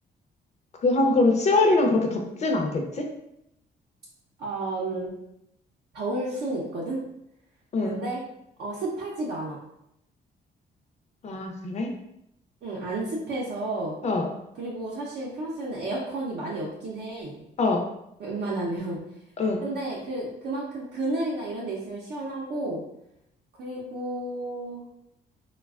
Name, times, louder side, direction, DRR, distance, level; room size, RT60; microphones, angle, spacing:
voice 1, 0.8-3.0 7.7-8.0 11.2-11.9 14.0-14.3 17.6-17.8 19.4-19.6, left 2 dB, 40° left, 2 dB, 0.5 m, -23 dB
voice 2, 4.4-5.1 5.9-7.0 7.8-8.2 8.6-9.6 12.6-13.9 14.6-17.3 18.2-19.0 19.6-22.8 23.6-24.8, right 2 dB, 65° right, -5 dB, 0.6 m, -31 dB
3.2 x 2.2 x 2.3 m, 0.80 s
cardioid pair, 120°, 19 cm